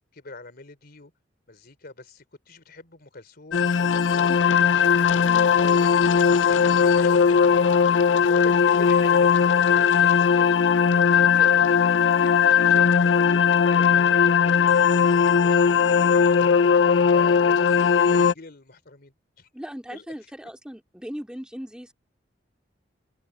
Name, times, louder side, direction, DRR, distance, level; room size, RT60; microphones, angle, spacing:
voice 1, 0.1-1.1 1.5-4.7 5.2-11.9 12.6-19.5 19.9-20.1, left 2 dB, 55° left, 3.6 m, -43 dB
sound 1, 3.5-18.3, left 6 dB, 70° left, 0.5 m, -19 dB
voice 2, 4.3-4.6 5.3-5.5 12.2-12.6 19.5-21.9, equal, 5° right, 4.3 m, -39 dB
head